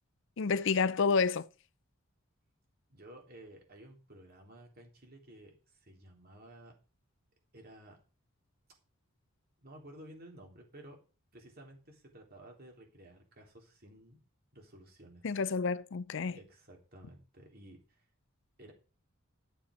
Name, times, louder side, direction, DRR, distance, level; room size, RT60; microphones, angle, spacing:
voice 1, 0.4-1.5 15.2-16.4, left 5 dB, 60° left, 0.5 m, -29 dB
voice 2, 2.9-6.8 7.5-8.0 9.6-11.0 11.3-14.2 14.5-15.3 16.3-18.0 18.6-18.7, right 1 dB, 45° right, 3.3 m, -54 dB
12.0 x 6.8 x 5.1 m
head